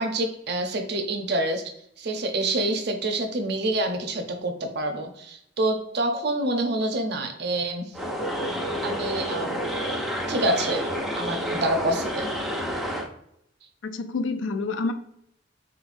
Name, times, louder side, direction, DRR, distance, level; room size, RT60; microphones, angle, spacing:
voice 1, 0.0-8.0 8.5-9.6 10.3-10.9 11.1-12.3, right 1 dB, 60° right, 5 dB, 0.7 m, -27 dB
sound 1, 7.9-13.1, equal, ahead, 0.5 m, -29 dB
voice 2, 13.8-14.9, left 3 dB, 80° left, 9 dB, 0.5 m, -28 dB
4.1 x 4.0 x 2.6 m, 0.75 s
head